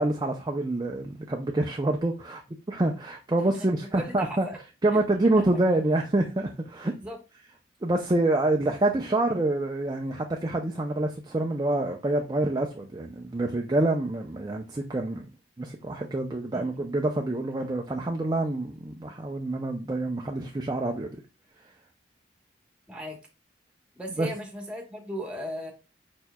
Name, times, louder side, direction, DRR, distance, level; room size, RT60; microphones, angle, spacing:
voice 1, 0.0-2.4 2.7-4.5 4.8-6.9 7.8-15.2 15.6-21.2 24.2-24.3, right 2 dB, 20° right, 0.5 m, -27 dB
voice 2, 3.9-4.6 4.9-5.0 5.4-5.5 7.0-7.2 16.5-16.7 22.9-23.2 23.9-25.7, equal, 5° right, 1.2 m, -36 dB
5.2 x 4.5 x 2.2 m
head